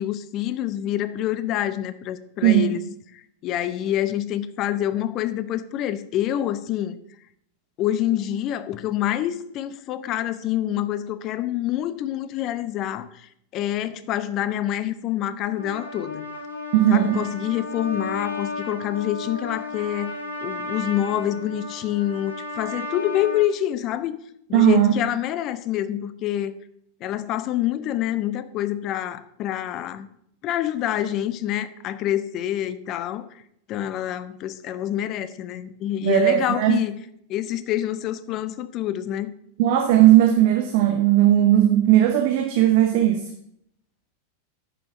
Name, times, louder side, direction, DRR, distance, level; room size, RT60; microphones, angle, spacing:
voice 1, 0.0-2.9 3.1-7.0 7.8-16.3 16.9-20.1 20.4-24.2 24.5-26.6 27.0-30.1 30.4-33.3 33.7-36.9 37.3-39.3, left 12 dB, 35° left, 14 dB, 0.6 m, -27 dB
voice 2, 2.4-2.8 16.7-17.2 24.5-24.9 36.0-36.8 39.6-43.2, right 12 dB, 50° right, 4 dB, 0.9 m, -17 dB
Trumpet, 15.5-23.5, left 2 dB, 75° left, 1.7 m, -34 dB
10.0 x 6.2 x 5.1 m, 0.72 s
figure-of-eight pair, 90°, 0 cm